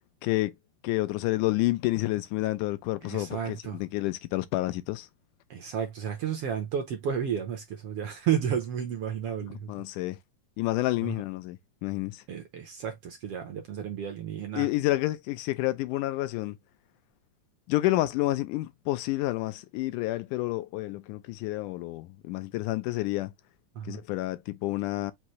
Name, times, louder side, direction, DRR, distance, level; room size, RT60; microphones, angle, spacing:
voice 1, 0.2-0.6 0.8-5.1 9.7-10.2 10.6-12.2 14.5-16.6 17.7-23.3 23.9-25.1, left 18 dB, 90° left, 2.2 m, -29 dB
voice 2, 3.0-3.8 5.5-9.7 12.3-14.7 23.8-24.0, right 8 dB, 70° right, 1.5 m, -32 dB
5.9 x 2.6 x 3.0 m
omnidirectional pair, 3.5 m